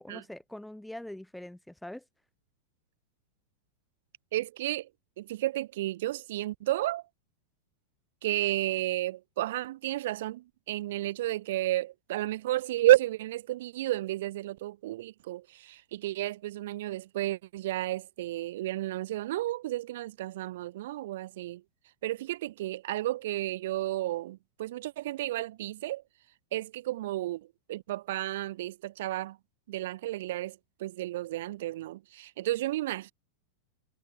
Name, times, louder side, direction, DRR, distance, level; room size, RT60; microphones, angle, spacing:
voice 1, 0.0-2.0, left 1 dB, 5° left, 2.3 m, -43 dB
voice 2, 4.3-4.9 5.2-7.0 8.2-21.6 22.0-26.0 26.5-29.4 29.7-33.1, right 15 dB, 55° right, 2.1 m, -31 dB
figure-of-eight pair, 90°, 0 cm